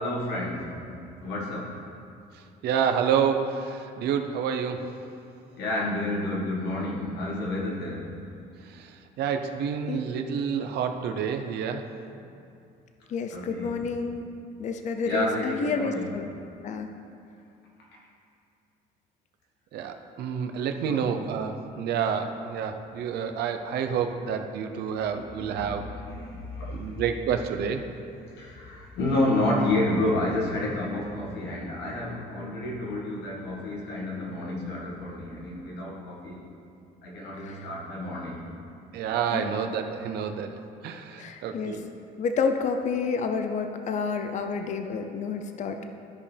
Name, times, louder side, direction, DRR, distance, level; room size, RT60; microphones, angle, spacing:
voice 1, 0.0-1.8 5.6-8.1 13.3-13.8 15.0-16.1 20.9-21.1 24.9-27.0 28.2-36.4 37.0-38.4, left 1 dB, 85° left, -3 dB, 1.8 m, -30 dB
voice 2, 2.6-4.9 8.6-11.9 15.1-15.3 19.7-25.8 26.7-27.9 38.9-40.5 40.8-41.8, right 7 dB, 75° right, 6 dB, 0.7 m, -29 dB
voice 3, 13.1-14.2 14.6-16.3 16.6-16.9 37.4-37.7 39.3-39.5 41.2-41.8 42.2-45.9, left 5 dB, 45° left, 6 dB, 0.6 m, -29 dB
13.0 x 5.3 x 3.4 m, 2.5 s
cardioid pair, 110°, 17 cm